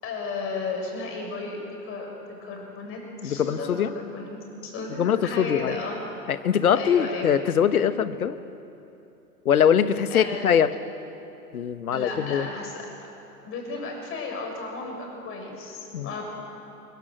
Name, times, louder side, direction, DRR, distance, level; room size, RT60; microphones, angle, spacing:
voice 1, 0.0-2.1 2.4-6.2 6.7-7.3 10.1-10.5 11.9-12.9 13.4-16.2, left 3 dB, 25° left, 1 dB, 6.9 m, -34 dB
voice 2, 3.2-3.9 5.0-5.8 6.3-8.4 9.4-10.7 11.5-12.5 15.9-16.1, left 8 dB, 60° left, 13 dB, 1.2 m, -22 dB
24.5 x 22.5 x 7.7 m, 2.9 s
figure-of-eight pair, 105°, 48 cm